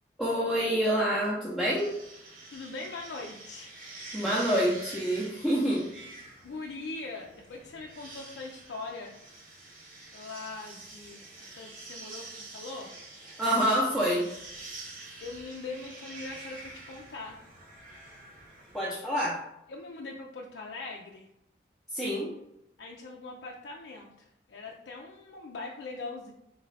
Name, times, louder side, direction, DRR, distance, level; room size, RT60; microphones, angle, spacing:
voice 1, 0.2-1.9 4.1-5.8 13.4-14.3 18.7-19.4 21.9-22.3, equal, ahead, -8 dB, 0.6 m, -27 dB
sound 1, 1.7-18.8, right 2 dB, 45° right, 0.8 m, -47 dB
voice 2, 2.5-3.7 6.4-9.1 10.1-12.9 15.2-17.4 19.2-19.3 19.7-21.3 22.8-26.3, left 3 dB, 80° left, -1 dB, 0.4 m, -41 dB
4.0 x 2.4 x 3.2 m, 0.82 s
head